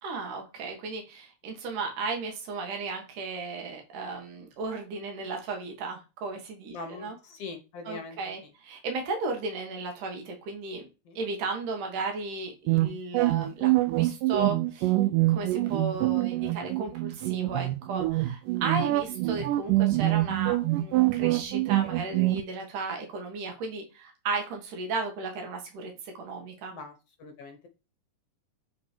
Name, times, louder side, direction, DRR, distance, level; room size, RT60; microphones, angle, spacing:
voice 1, 0.0-7.1 7.9-10.9 11.1-13.7 14.0-14.9 15.3-26.7, right 4 dB, 70° right, 3 dB, 3.1 m, -35 dB
voice 2, 6.7-8.2 11.0-11.2 26.7-27.7, left 4 dB, 65° left, 5 dB, 1.7 m, -42 dB
sound 1, 12.7-22.4, right 17 dB, 90° right, 2.3 m, -25 dB
7.8 x 4.3 x 4.5 m, 0.29 s
omnidirectional pair, 3.8 m